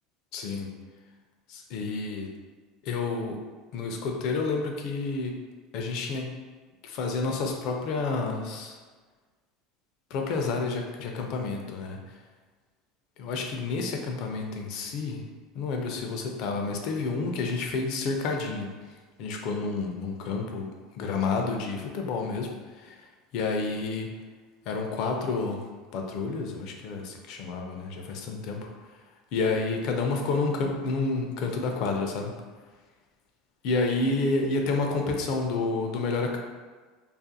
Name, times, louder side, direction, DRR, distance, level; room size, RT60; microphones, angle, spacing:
voice 1, 0.3-0.7 1.5-2.3 2.8-3.4 3.7-5.4 5.7-6.3 6.8-8.8 10.1-12.0 13.2-15.2 15.5-18.7 19.2-20.7 21.0-22.5 22.8-23.1 23.3-24.1 24.7-25.6 25.9-28.7 29.3-32.3 33.6-36.4, left 3 dB, 60° left, 2 dB, 0.4 m, -29 dB
2.4 x 2.4 x 2.6 m, 1.4 s
supercardioid pair, 115°, 0 cm